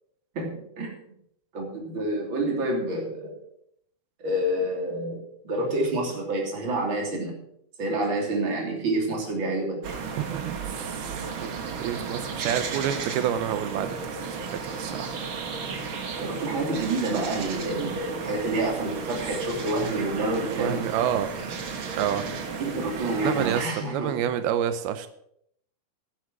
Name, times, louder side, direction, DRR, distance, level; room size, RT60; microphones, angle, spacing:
voice 1, 0.3-1.0 1.5-3.4 4.2-7.4 7.8-9.8 16.2-20.9 22.6-24.3, right 1 dB, 35° right, 1 dB, 3.4 m, -28 dB
sound 1, 9.8-23.7, right 5 dB, 65° right, 1.3 m, -34 dB
voice 2, 10.2-11.5 11.8-13.9 14.2-15.1 20.5-21.3 21.9-22.3 23.2-25.1, right 10 dB, 90° right, 11 dB, 2.7 m, -28 dB
11.5 x 10.0 x 6.2 m, 0.71 s
omnidirectional pair, 4.3 m